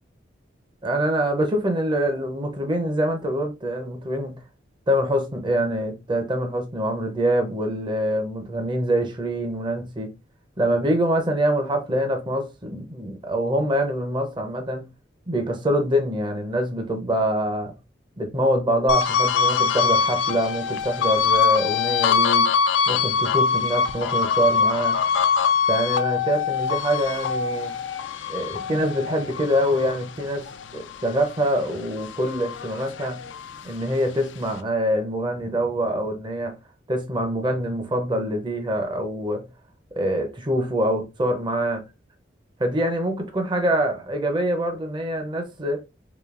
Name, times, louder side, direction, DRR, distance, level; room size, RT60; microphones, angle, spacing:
voice 1, 0.8-4.3 4.9-10.1 10.6-14.8 15.3-17.7 18.2-22.5 22.9-25.0 25.7-27.7 28.3-30.5 30.7-33.2 33.6-36.5 36.9-39.4 40.0-41.8 42.6-45.8, equal, 25° right, 0.7 m, -25 dB
sound 1, 18.9-31.5 31.9-33.6, left 6 dB, 85° left, 0.4 m, -23 dB
4.9 x 2.7 x 2.4 m
head